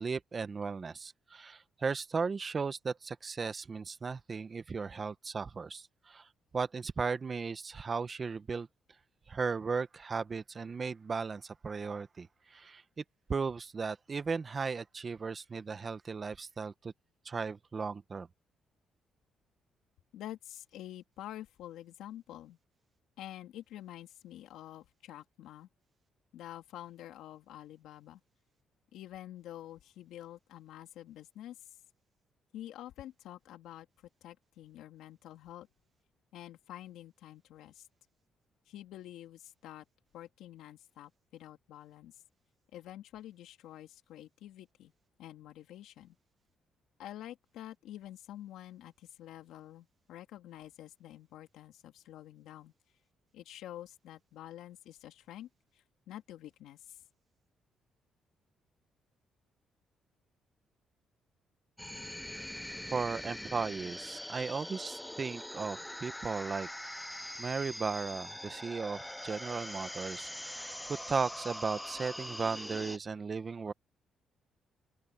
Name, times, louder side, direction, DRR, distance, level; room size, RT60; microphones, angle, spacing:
voice 1, 0.0-6.3 6.5-8.7 9.3-12.8 13.3-16.9 17.2-18.3 62.9-66.7 67.4-70.7 71.1-73.7, right 5 dB, 35° right, 1.2 m, -36 dB
voice 2, 20.1-22.6 23.2-25.7 26.3-28.2 28.9-31.7 32.5-33.9 34.2-35.7 36.3-37.9 38.7-39.8 40.1-42.2 42.7-44.9 45.2-46.2 47.0-52.7 53.3-55.5 55.7-57.0, left 12 dB, 85° left, 3.0 m, -48 dB
sound 1, 61.8-73.0, left 1 dB, 5° left, 0.9 m, -43 dB
open air
cardioid pair, 90°, 0 cm